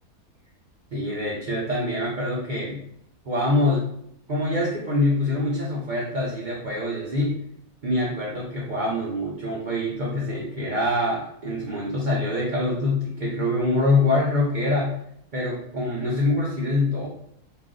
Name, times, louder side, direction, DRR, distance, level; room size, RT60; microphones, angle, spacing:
voice 1, 0.9-2.8 3.2-3.9 4.3-7.4 7.8-15.0 15.3-17.1, left 2 dB, 80° right, -4 dB, 0.4 m, -25 dB
2.5 x 2.4 x 3.6 m, 0.70 s
omnidirectional pair, 1.6 m